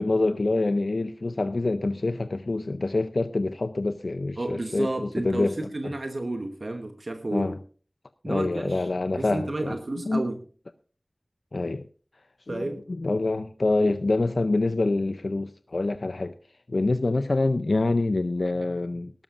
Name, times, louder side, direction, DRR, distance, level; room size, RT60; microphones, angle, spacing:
voice 1, 0.0-5.6 7.3-7.6 8.3-9.7 10.1-10.2 11.5-11.9 12.5-16.4 16.7-19.1, left 2 dB, 90° left, 0.5 m, -26 dB
voice 2, 4.4-7.5 8.2-8.9 9.1-10.4 12.5-12.8, right 2 dB, 70° right, 1.0 m, -31 dB
18.5 x 12.5 x 2.5 m
wide cardioid pair, 45°, 0 cm